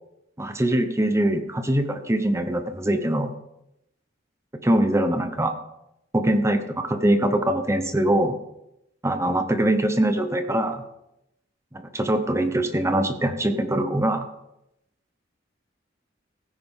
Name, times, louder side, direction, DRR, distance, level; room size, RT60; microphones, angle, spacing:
voice 1, 0.4-3.3 4.6-5.5 6.1-8.4 9.0-10.8 11.7-14.3, right 1 dB, 15° right, 8 dB, 1.0 m, -23 dB
16.0 x 9.5 x 3.7 m, 0.83 s
head